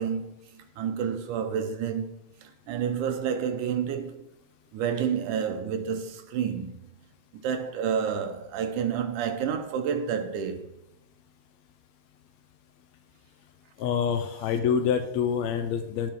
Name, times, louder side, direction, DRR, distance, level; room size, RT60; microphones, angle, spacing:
voice 1, 0.0-4.2 4.7-6.7 7.4-10.6, right 7 dB, 70° right, 2.2 m, -29 dB
voice 2, 13.8-16.1, left 7 dB, 85° left, 1.5 m, -26 dB
16.5 x 5.5 x 3.7 m
omnidirectional pair, 4.0 m